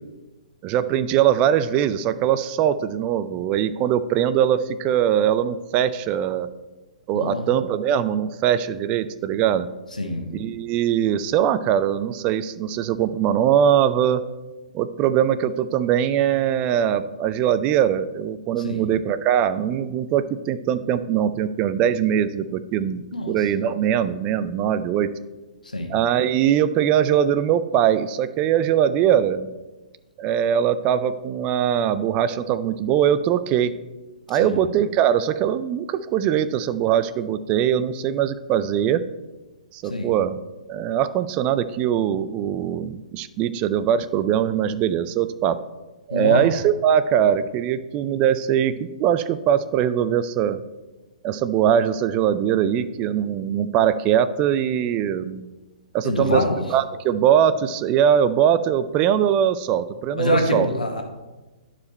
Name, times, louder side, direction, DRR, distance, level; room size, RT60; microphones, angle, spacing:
voice 1, 0.6-6.5 7.1-9.7 10.3-14.2 14.7-25.1 25.9-29.5 30.2-33.7 34.3-39.0 39.7-40.4 40.7-45.6 46.1-50.6 51.2-55.4 55.9-56.4 56.7-60.7, right 9 dB, 30° right, 13 dB, 0.3 m, -21 dB
voice 2, 10.0-10.3 18.6-18.9 23.1-23.4 25.6-25.9 34.4-34.6 39.8-40.1 46.1-46.4 56.0-56.6 60.2-61.0, left 1 dB, 85° left, 3 dB, 1.3 m, -25 dB
10.5 x 5.0 x 4.3 m, 1.1 s
figure-of-eight pair, 120°, 4 cm